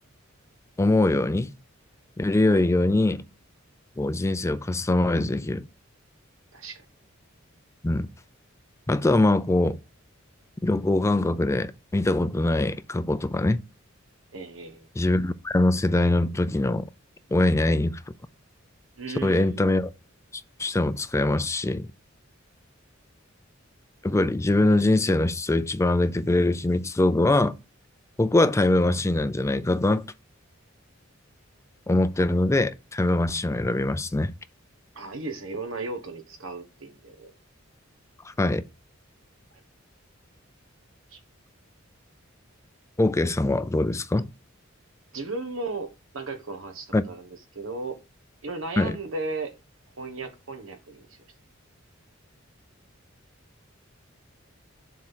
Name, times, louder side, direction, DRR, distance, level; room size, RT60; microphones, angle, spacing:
voice 1, 0.8-1.5 2.2-3.2 4.0-5.7 7.8-8.1 8.9-9.8 10.6-13.6 15.0-16.9 17.3-18.0 19.2-19.9 20.6-21.9 24.0-27.6 28.2-30.0 31.9-34.3 38.3-38.6 43.0-44.3 46.9-47.0 48.8-49.0, left 2 dB, 15° left, 0.4 m, -23 dB
voice 2, 14.3-14.9 19.0-19.7 34.9-37.3 41.1-41.2 45.1-48.0 48.4-49.5 50.0-51.1, right 3 dB, 80° right, 1.5 m, -35 dB
7.4 x 3.7 x 6.3 m
head